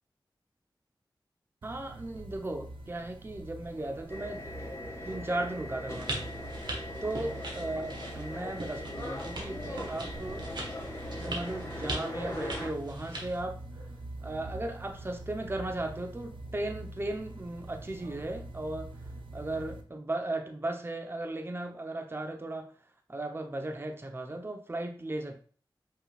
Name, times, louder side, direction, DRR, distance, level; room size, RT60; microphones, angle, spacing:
voice 1, 1.6-4.5 5.0-6.3 7.0-10.5 11.1-13.6 14.2-18.9 19.3-22.7 23.1-25.4, right 2 dB, 30° right, 0.8 m, -36 dB
sound 1, 1.6-19.8, right 2 dB, 85° right, 0.6 m, -45 dB
sound 2, 4.1-12.7, left 1 dB, 35° left, 1.6 m, -41 dB
sound 3, 5.9-13.4, right 1 dB, 65° right, 1.4 m, -41 dB
5.7 x 3.7 x 2.4 m
cardioid pair, 45°, 8 cm